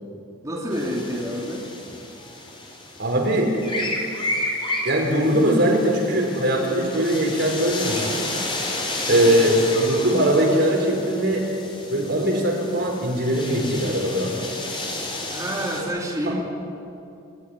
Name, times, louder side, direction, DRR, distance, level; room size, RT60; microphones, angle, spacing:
voice 1, 0.4-1.7 9.1-9.4 15.3-16.4, equal, 15° right, -4 dB, 3.0 m, -28 dB
sound 1, 0.7-15.8, left 2 dB, 25° left, 4.6 m, -32 dB
voice 2, 3.0-3.5 4.8-8.4 9.1-11.5 11.9-14.4, right 1 dB, 60° right, 0 dB, 5.1 m, -21 dB
27.5 x 13.0 x 9.8 m, 2.5 s
head